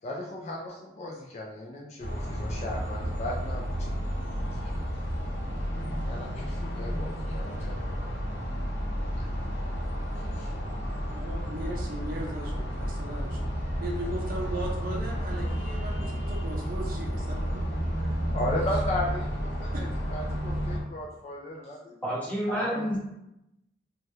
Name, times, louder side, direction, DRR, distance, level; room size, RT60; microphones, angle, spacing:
voice 1, 0.0-4.1 4.5-4.9 6.0-8.2 9.2-9.3 10.2-10.3 18.0-22.0 22.5-23.0, left 1 dB, 35° left, -2 dB, 0.3 m, -36 dB
sound 1, 2.0-20.8, equal, 65° left, 0.7 m, -31 dB
voice 2, 11.1-17.6 22.7-22.9, right 1 dB, 50° right, -1 dB, 0.5 m, -38 dB
voice 3, 22.0-23.0, equal, 10° left, -9 dB, 1.0 m, -29 dB
3.3 x 2.3 x 2.7 m, 0.86 s
head